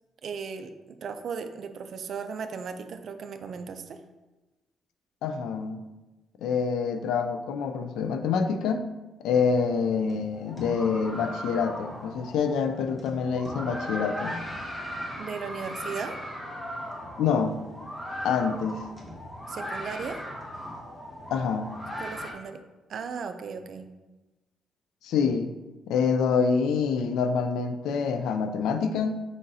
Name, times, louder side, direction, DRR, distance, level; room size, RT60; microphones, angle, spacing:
voice 1, 0.2-4.0 15.2-16.2 19.5-20.2 22.0-22.6 22.9-23.9, right 6 dB, 60° right, 8 dB, 0.4 m, -36 dB
voice 2, 5.2-5.8 6.4-8.9 9.2-14.4 17.2-17.6 18.2-18.8 21.3-21.7 25.0-25.5 25.9-29.2, left 5 dB, 85° left, 8 dB, 0.3 m, -26 dB
sound 1, 9.3-22.3, equal, 15° left, 1.0 m, -38 dB
5.0 x 3.9 x 2.7 m, 1.1 s
cardioid pair, 90°, 0 cm